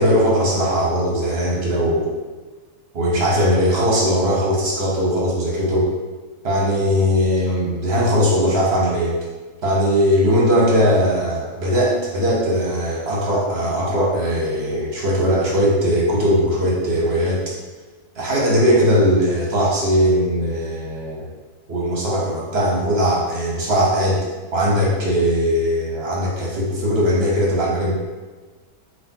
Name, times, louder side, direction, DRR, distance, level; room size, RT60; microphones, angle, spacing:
voice 1, 0.0-2.1 2.9-5.9 6.4-9.1 9.6-17.4 18.1-21.3 21.7-24.2 24.5-27.9, equal, 45° right, -3 dB, 1.2 m, -19 dB
5.8 x 2.9 x 2.9 m, 1.3 s
omnidirectional pair, 1.7 m